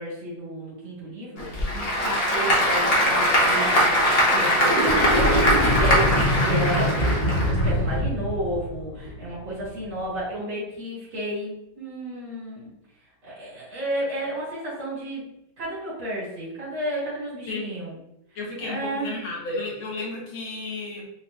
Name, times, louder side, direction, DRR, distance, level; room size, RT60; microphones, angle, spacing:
voice 1, 0.0-4.0 4.3-12.7 13.2-15.3 15.6-18.0 18.6-19.2, right 1 dB, 90° right, -8 dB, 2.5 m, -32 dB
Applause / Crowd, 1.4-7.9, equal, 45° left, 0.8 m, -22 dB
sound 1, 4.5-9.8, equal, 65° left, 1.6 m, -24 dB
voice 2, 17.5-17.9 18.4-21.1, left 2 dB, 85° left, -4 dB, 1.9 m, -33 dB
5.3 x 2.5 x 2.4 m, 0.82 s
omnidirectional pair, 2.1 m